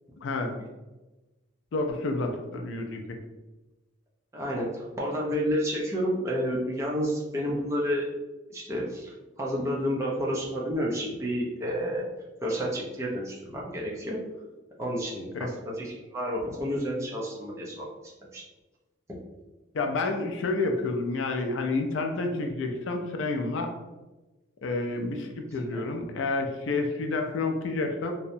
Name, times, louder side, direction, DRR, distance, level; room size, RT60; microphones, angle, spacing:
voice 1, 0.2-0.6 1.7-3.2 15.3-15.5 19.7-23.7 24.6-28.1, left 3 dB, 70° left, 4 dB, 0.4 m, -29 dB
voice 2, 4.3-8.0 8.5-12.1 12.4-14.2 14.8-17.9 18.3-18.4 19.1-19.2 25.7-25.9, equal, 15° right, -4 dB, 0.4 m, -30 dB
2.7 x 2.1 x 2.5 m, 1.1 s
head